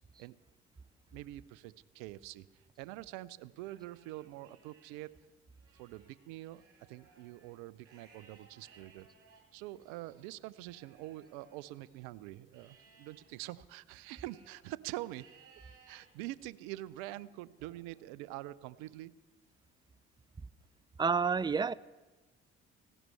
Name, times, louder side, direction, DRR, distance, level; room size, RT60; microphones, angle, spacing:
voice 1, 1.1-2.5 2.8-5.1 5.8-6.6 6.9-9.1 9.5-15.2 15.9-19.1, right 16 dB, 70° right, 20 dB, 0.6 m, -45 dB
Livestock farm animals working animals, 3.5-5.1 5.5-12.1 12.5-14.6 15.1-16.1 16.6-17.0 17.6-18.7, right 5 dB, 45° right, 5.2 m, -64 dB
voice 2, 21.0-21.7, right 5 dB, 15° right, 21 dB, 0.4 m, -29 dB
18.0 x 16.0 x 3.3 m, 1.2 s
figure-of-eight pair, 45°, 32 cm